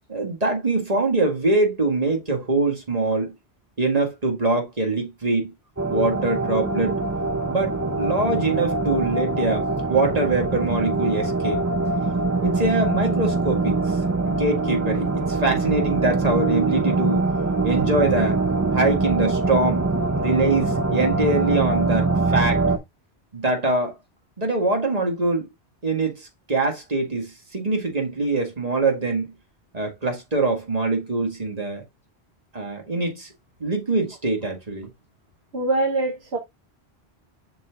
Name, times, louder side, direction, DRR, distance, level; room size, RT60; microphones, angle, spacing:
voice 1, 0.1-3.3 3.8-5.5 5.9-7.0 7.5-11.6 12.4-14.0 14.3-17.2 17.6-18.4 18.7-19.8 20.2-22.6 23.3-23.9 24.4-25.5 25.8-29.3 29.7-31.8 32.5-33.3 33.6-34.9, right 2 dB, 35° right, 2.0 m, -23 dB
sound 1, 5.8-22.8, right 3 dB, 20° right, 0.5 m, -23 dB
voice 2, 35.5-36.4, right 2 dB, 75° right, 1.5 m, -23 dB
7.4 x 6.0 x 2.4 m
omnidirectional pair, 1.1 m